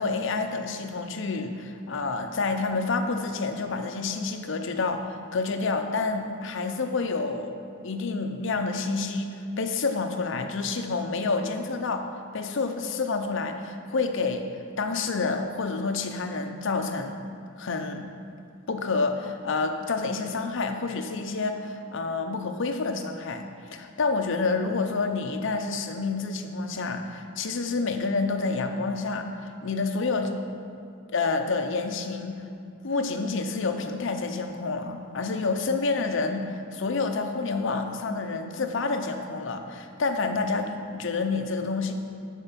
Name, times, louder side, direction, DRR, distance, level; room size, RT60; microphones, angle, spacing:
voice 1, 0.0-7.6 7.8-9.3 9.6-14.5 14.8-17.2 17.6-18.1 18.7-30.6 31.1-32.4 32.8-41.9, left 3 dB, 65° left, 6 dB, 0.7 m, -28 dB
10.5 x 4.5 x 5.8 m, 2.4 s
head